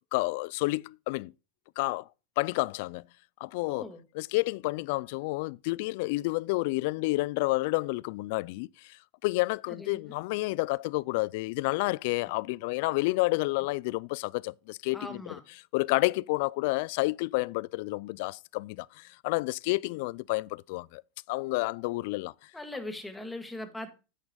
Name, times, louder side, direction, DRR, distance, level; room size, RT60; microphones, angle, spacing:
voice 1, 0.1-1.3 1.8-2.1 2.4-3.1 3.4-3.9 4.2-15.2 15.7-21.0 21.3-22.3, left 23 dB, 65° left, 0.3 m, -30 dB
voice 2, 3.7-4.0 9.7-10.2 12.2-12.3 14.9-15.4 22.5-23.9, left 2 dB, 5° left, 2.0 m, -40 dB
9.9 x 8.8 x 2.3 m
hypercardioid pair, 115°, 0 cm